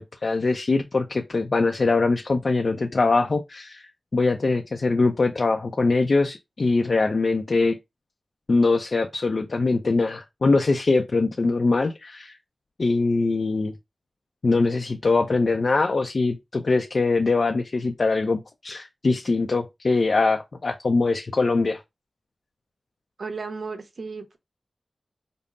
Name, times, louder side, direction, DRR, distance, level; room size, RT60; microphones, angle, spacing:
voice 1, 0.0-3.8 4.1-7.8 8.5-12.4 12.8-13.7 14.4-21.8, left 3 dB, 60° left, 0.5 m, -22 dB
voice 2, 23.2-24.4, right 4 dB, 80° right, 0.8 m, -34 dB
5.2 x 2.0 x 2.5 m
wide cardioid pair, 100°, 0 cm